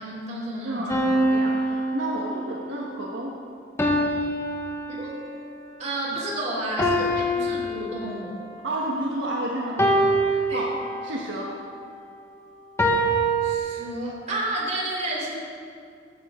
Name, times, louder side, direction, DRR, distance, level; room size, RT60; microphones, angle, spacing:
voice 1, 0.0-1.1 5.0-5.1 5.8-8.3 10.5-10.6 13.4-15.4, right 1 dB, 35° right, -3 dB, 3.2 m, -31 dB
voice 2, 0.6-3.3 8.6-11.5, right 1 dB, 70° right, -3 dB, 1.4 m, -31 dB
sound 1, 0.9-2.7 3.8-5.4 6.8-8.5 9.8-11.3 12.8-13.6, right 1 dB, 15° left, 1.3 m, -24 dB
14.5 x 14.0 x 3.8 m, 2.3 s
head